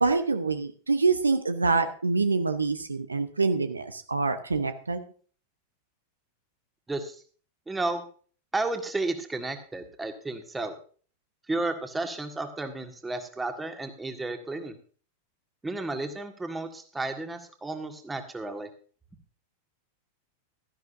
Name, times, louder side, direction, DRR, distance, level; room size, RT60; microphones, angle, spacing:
voice 1, 0.0-5.0, right 4 dB, 80° right, 10 dB, 0.8 m, -26 dB
voice 2, 6.9-7.2 7.7-8.0 8.5-10.7 11.5-14.8 15.6-18.7, right 2 dB, 10° right, 6 dB, 1.8 m, -32 dB
16.5 x 12.5 x 2.6 m, 0.42 s
figure-of-eight pair, 90°, 0 cm